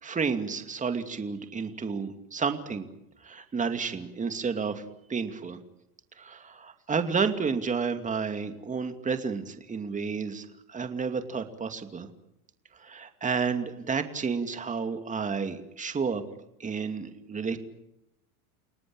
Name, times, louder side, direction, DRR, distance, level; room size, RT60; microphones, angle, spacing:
voice 1, 0.0-2.9 3.2-4.8 5.1-5.6 6.2-12.1 12.8-16.2 16.6-17.6, right 5 dB, 15° right, 8 dB, 2.6 m, -31 dB
29.5 x 18.5 x 8.8 m, 0.83 s
supercardioid pair, 120°, 44 cm